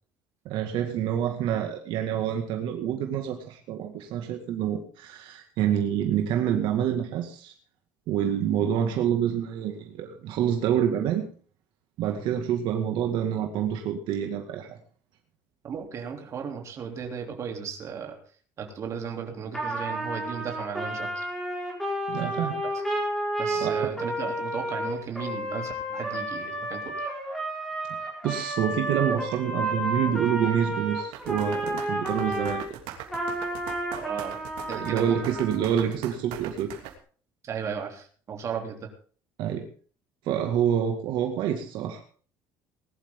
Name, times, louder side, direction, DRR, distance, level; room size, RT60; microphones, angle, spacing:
voice 1, 0.5-7.5 8.1-11.2 12.0-14.8 22.1-22.6 23.6-23.7 28.2-32.6 34.7-36.7 39.4-39.7 40.2-42.0, right 9 dB, 60° right, 3 dB, 2.1 m, -27 dB
voice 2, 15.6-18.2 18.6-21.3 23.4-27.1 34.0-35.2 35.8-35.9 37.4-38.9, right 7 dB, 35° right, 2 dB, 3.3 m, -35 dB
Trumpet, 19.5-32.6 33.1-35.6, right 1 dB, 5° left, 4.8 m, -31 dB
sound 1, 31.1-36.9, right 11 dB, 80° right, 3.0 m, -40 dB
20.0 x 12.0 x 3.8 m, 0.43 s
cardioid pair, 160°, 9 cm